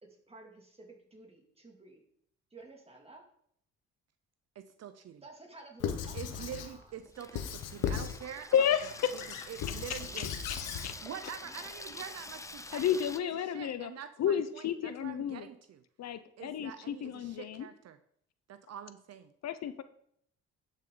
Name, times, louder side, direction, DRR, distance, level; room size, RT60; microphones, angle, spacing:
voice 1, 0.0-2.0 2.5-3.2 5.2-7.1, right 3 dB, 20° right, 1 dB, 2.5 m, -53 dB
voice 2, 4.6-5.2 6.1-8.5 9.1-10.3 10.8-15.8 16.4-18.0 18.5-19.3, right 9 dB, 55° right, 11 dB, 0.6 m, -46 dB
Squeak / Writing, 5.8-6.7 7.4-8.2 8.7-10.9, left 8 dB, 85° left, 1.1 m, -37 dB
Water tap faucet / Sink (filling or washing), 6.7-13.2, left 2 dB, 10° left, 0.6 m, -47 dB
voice 3, 9.9-11.0 12.7-13.9 14.2-15.5 16.0-17.7 19.4-19.8, left 9 dB, 60° left, 12 dB, 0.7 m, -32 dB
11.5 x 6.3 x 3.9 m, 0.68 s
cardioid pair, 90°, 30 cm